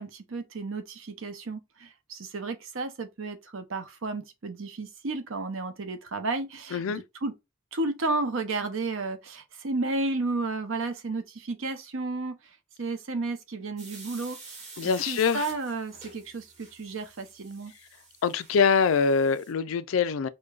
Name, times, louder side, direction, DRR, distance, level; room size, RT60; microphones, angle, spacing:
voice 1, 0.0-7.3 7.7-12.3 12.8-14.6 14.8-17.7, right 3 dB, 85° right, 0.7 m, -32 dB
voice 2, 6.7-7.0 14.8-15.5 18.2-20.3, left 5 dB, 90° left, 0.4 m, -24 dB
sound 1, 13.8-19.5, right 4 dB, 35° right, 1.1 m, -48 dB
5.0 x 2.2 x 2.3 m
head